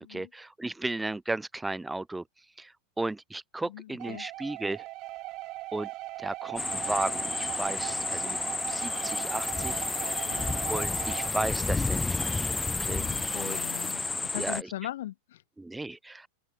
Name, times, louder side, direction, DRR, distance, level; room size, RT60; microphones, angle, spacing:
voice 1, 0.1-2.2 2.6-2.7 3.0-4.8 5.7-5.9 6.2-8.4 8.7-10.4 10.7-13.7 14.4-14.7 15.6-16.3, right 2 dB, 5° right, 0.6 m, -35 dB
voice 2, 3.6-4.3 10.2-10.5 12.8-14.0 14.3-15.4, left 14 dB, 55° left, 5.9 m, -40 dB
sound 1, 4.0-11.3, right 19 dB, 40° right, 3.7 m, -39 dB
sound 2, 6.6-14.6, left 3 dB, 10° left, 1.4 m, -31 dB
open air
figure-of-eight pair, 90°, 0 cm